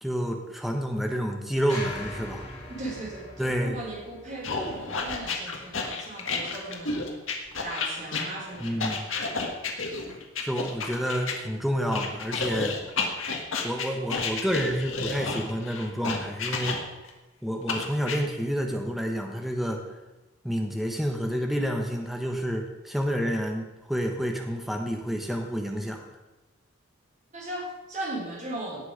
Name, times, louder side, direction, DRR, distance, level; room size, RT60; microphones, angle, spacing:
voice 1, 0.0-2.4 3.4-3.8 8.6-9.1 10.4-12.8 13.6-16.8 17.4-19.8 20.4-26.1, equal, ahead, 2 dB, 1.1 m, -29 dB
sound 1, 1.7-6.0, left 2 dB, 30° left, 4.0 m, -42 dB
voice 2, 2.7-7.1 7.6-8.9 27.3-28.9, right 1 dB, 35° right, -3 dB, 3.5 m, -37 dB
sound 2, 4.4-11.4 11.9-17.1 17.7-18.2, left 4 dB, 80° left, 1.7 m, -31 dB
18.0 x 6.0 x 5.1 m, 1.1 s
head